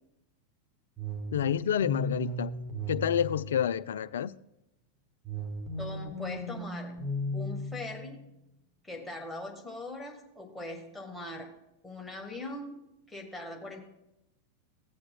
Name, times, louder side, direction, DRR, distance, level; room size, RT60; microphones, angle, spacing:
sound 1, 1.0-4.1 5.2-8.2, equal, 20° right, 1.3 m, -36 dB
voice 1, 1.3-2.5 2.9-4.3, left 9 dB, 60° left, 0.3 m, -29 dB
voice 2, 5.8-7.0 7.3-8.3 8.8-11.5 11.8-12.8 13.1-13.8, left 2 dB, 5° left, 1.4 m, -41 dB
16.5 x 7.4 x 2.2 m
figure-of-eight pair, 90°, 0 cm